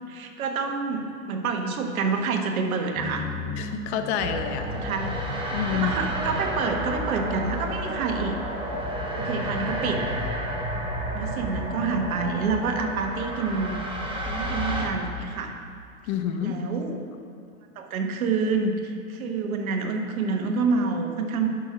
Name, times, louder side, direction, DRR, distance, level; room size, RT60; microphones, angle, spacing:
voice 1, 0.1-3.3 4.7-5.2 5.7-8.4 9.2-10.0 11.1-13.8 14.3-15.5 16.4-17.0 17.7-21.5, right 4 dB, 75° right, 4 dB, 1.4 m, -27 dB
sound 1, 3.0-7.3, left 2 dB, 5° left, 2.2 m, -38 dB
voice 2, 3.6-4.7 5.5-5.9 16.1-16.6, left 9 dB, 50° left, 7 dB, 1.0 m, -28 dB
sound 2, 4.2-14.8, equal, 10° right, 1.5 m, -31 dB
9.9 x 6.3 x 5.9 m, 2.5 s
hypercardioid pair, 125°, 43 cm